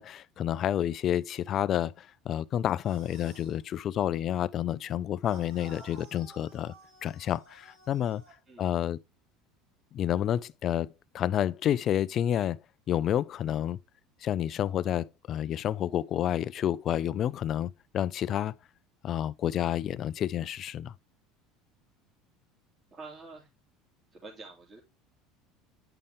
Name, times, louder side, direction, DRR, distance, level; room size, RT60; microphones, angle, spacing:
voice 1, 0.0-6.7 7.0-8.2 8.6-9.0 9.9-10.9 11.1-12.6 12.9-13.8 14.2-18.5 19.0-20.9, left 10 dB, 45° left, 0.5 m, -29 dB
sound 1, 2.7-3.6 5.2-8.4, right 3 dB, 80° right, 4.3 m, -53 dB
voice 2, 22.9-23.5 24.1-24.8, right 3 dB, 30° right, 2.7 m, -47 dB
9.1 x 5.5 x 3.5 m
supercardioid pair, 105°, 0 cm